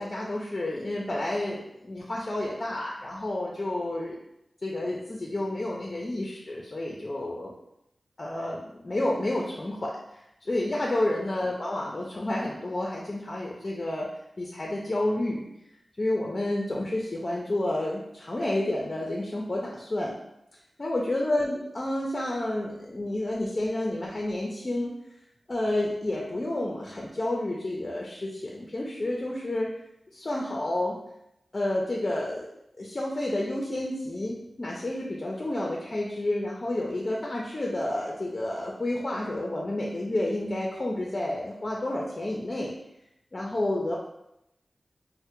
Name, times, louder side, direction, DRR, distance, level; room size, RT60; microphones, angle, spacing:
voice 1, 0.0-4.2 4.6-7.5 8.2-14.1 14.4-15.4 16.0-20.2 20.8-24.9 25.5-29.7 30.1-31.0 31.5-32.5 32.8-42.7 43.3-44.0, left 1 dB, 40° left, -3 dB, 0.4 m, -30 dB
3.2 x 2.1 x 2.9 m, 0.82 s
wide cardioid pair, 70°, 0 cm